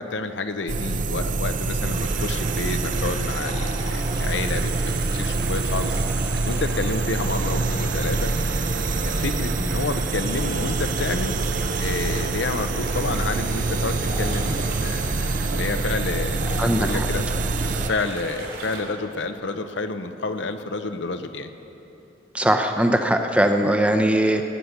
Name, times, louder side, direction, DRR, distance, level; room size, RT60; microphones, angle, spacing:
voice 1, 0.0-6.0 6.4-8.3 9.1-11.3 11.8-17.3 17.9-21.5, left 3 dB, 70° left, 8 dB, 0.8 m, -29 dB
sound 1, 0.7-17.9, right 3 dB, 45° right, 0.5 m, -25 dB
sound 2, 1.8-18.8, right 2 dB, 75° right, 3.2 m, -36 dB
voice 2, 16.6-17.1 22.3-24.5, right 1 dB, 5° right, 5 dB, 0.7 m, -20 dB
18.0 x 9.5 x 6.6 m, 2.9 s
head